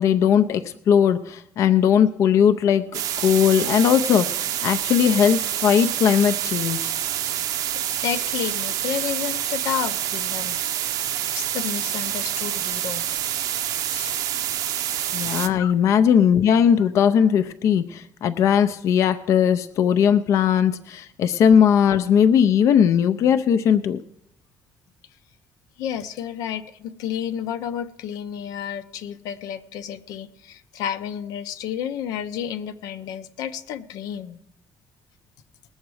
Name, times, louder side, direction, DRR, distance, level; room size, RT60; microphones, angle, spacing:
voice 1, 0.0-6.9 15.1-24.0, left 8 dB, 55° left, 10 dB, 0.5 m, -19 dB
sound 1, 2.9-15.5, right 11 dB, 75° right, 0.6 m, -27 dB
voice 2, 7.3-10.6 11.2-13.1 13.8-14.2 15.6-15.7 16.8-16.9 25.8-34.4, left 9 dB, 90° left, 9 dB, 0.8 m, -31 dB
19.5 x 7.2 x 4.8 m, 0.77 s
cardioid pair, 165°, 6 cm